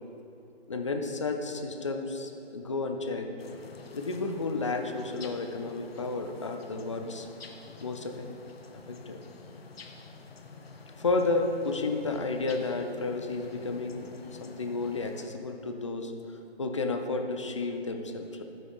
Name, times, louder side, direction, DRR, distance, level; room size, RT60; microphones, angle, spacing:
voice 1, 0.7-3.3 3.9-7.3 7.8-8.3 8.7-9.2 11.0-18.4, left 3 dB, 30° left, 5 dB, 0.5 m, -32 dB
sound 1, 3.4-15.3, left 3 dB, 70° left, 1.0 m, -48 dB
12.5 x 6.1 x 3.5 m, 2.9 s
figure-of-eight pair, 150°, 32 cm